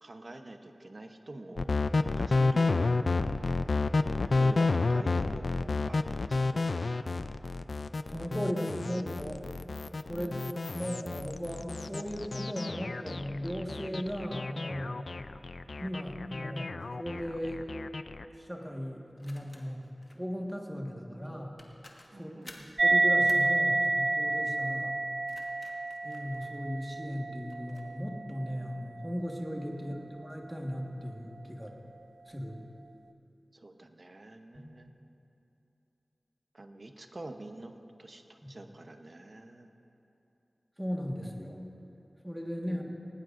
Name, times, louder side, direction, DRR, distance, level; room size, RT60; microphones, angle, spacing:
voice 1, 0.0-3.6 4.3-7.0 10.1-10.8 22.1-22.7 29.7-29.9 33.5-34.9 36.5-37.7 38.0-39.7 42.6-42.9, right 2 dB, 50° right, 5 dB, 0.9 m, -46 dB
sound 1, 1.6-18.2, left 3 dB, 75° left, 0.3 m, -31 dB
voice 2, 8.1-9.4 10.1-15.0 15.8-17.6 18.4-19.8 20.1-21.5 22.1-22.3 22.8-25.0 26.0-31.7 32.3-32.6 34.5-34.8 40.8-41.6 42.2-42.9, equal, 5° right, 0 dB, 1.5 m, -37 dB
sound 2, 16.8-17.0 19.2-20.2 21.2-21.3 21.6-22.8 23.3-23.5 25.0-26.9 27.5-27.9, left 1 dB, 40° left, 1.4 m, -53 dB
sound 3, 22.8-29.7, right 2 dB, 75° right, 0.4 m, -29 dB
19.5 x 17.5 x 2.6 m, 2.9 s
wide cardioid pair, 75°, 0 cm